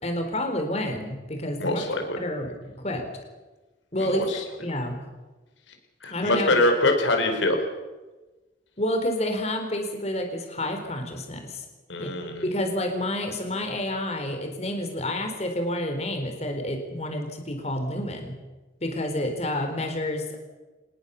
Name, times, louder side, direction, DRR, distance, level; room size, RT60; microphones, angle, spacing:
voice 1, 0.0-1.9 2.2-3.0 3.9-4.2 4.6-5.0 6.1-6.6 8.8-11.6 12.0-12.1 12.4-18.4 18.8-20.4, left 1 dB, 35° left, 4 dB, 4.1 m, -29 dB
voice 2, 1.6-2.2 4.1-4.4 6.0-7.6 11.9-12.5, left 2 dB, 85° left, 4 dB, 4.7 m, -24 dB
24.0 x 20.0 x 7.0 m, 1.2 s
head